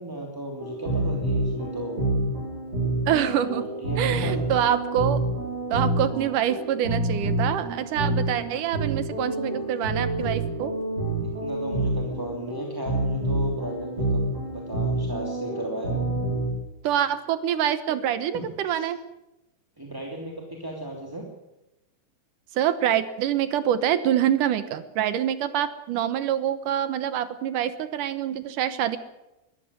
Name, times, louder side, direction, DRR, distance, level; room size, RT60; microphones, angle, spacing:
voice 1, 0.0-2.1 2.9-3.1 3.5-4.5 11.2-16.1 18.3-18.9 19.8-21.3, right 1 dB, 5° right, -1 dB, 1.9 m, -36 dB
sound 1, 0.6-16.5, right 2 dB, 25° right, 4.7 m, -28 dB
voice 2, 3.1-3.7 4.0-5.2 5.7-10.7 16.8-19.0 22.5-29.0, right 10 dB, 70° right, 13 dB, 2.3 m, -25 dB
22.0 x 14.0 x 9.6 m, 0.96 s
omnidirectional pair, 4.2 m